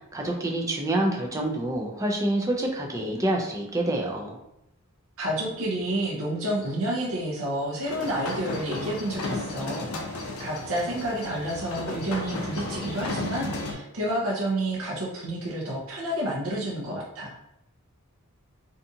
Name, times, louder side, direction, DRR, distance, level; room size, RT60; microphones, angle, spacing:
voice 1, 0.1-4.4, right 1 dB, 15° right, 0 dB, 0.4 m, -27 dB
voice 2, 5.2-17.4, right 1 dB, 65° right, -5 dB, 0.6 m, -30 dB
sound 1, 7.9-13.7, left 2 dB, 80° left, 0.5 m, -34 dB
2.6 x 2.4 x 2.6 m, 0.84 s
head